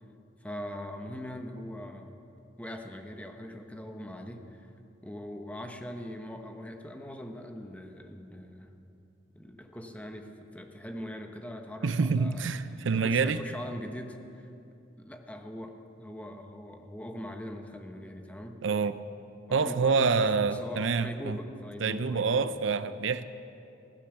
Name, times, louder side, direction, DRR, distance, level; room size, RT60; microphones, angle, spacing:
voice 1, 0.4-2.1 2.6-4.7 5.0-8.7 9.3-12.5 12.9-14.5 15.0-18.6 19.5-22.5, equal, 10° left, 5 dB, 1.0 m, -41 dB
voice 2, 11.8-13.4 18.6-19.0 19.5-21.4 21.8-23.2, right 5 dB, 80° right, 13 dB, 0.5 m, -27 dB
16.5 x 10.0 x 7.2 m, 2.7 s
head